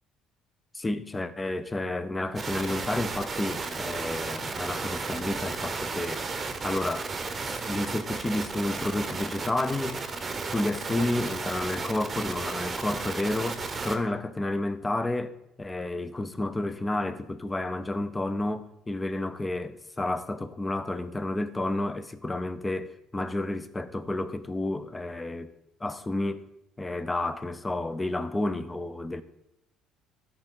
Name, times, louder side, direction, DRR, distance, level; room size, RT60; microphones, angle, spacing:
voice 1, 0.7-6.2 6.6-7.1 7.4-10.0 10.5-25.5 25.8-26.5 26.8-29.2, left 2 dB, 15° left, 0.5 m, -31 dB
sound 1, 2.4-14.0, right 4 dB, 25° right, 0.8 m, -34 dB
13.0 x 4.4 x 3.7 m
cardioid pair, 115°, 0 cm